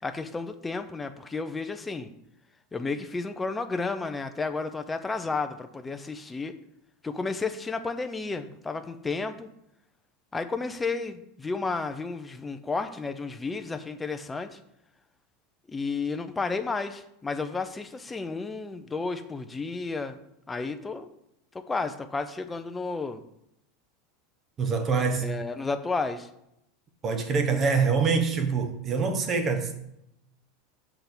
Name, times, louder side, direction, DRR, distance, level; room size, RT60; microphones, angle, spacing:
voice 1, 0.0-2.1 2.7-6.5 7.0-9.5 10.3-14.6 15.7-20.2 20.5-21.1 21.5-23.2 25.2-26.3, left 4 dB, 10° left, 0.4 m, -32 dB
voice 2, 24.6-25.3 27.0-29.7, right 5 dB, 25° right, 0.8 m, -25 dB
7.7 x 3.4 x 5.9 m
supercardioid pair, 160°, 0 cm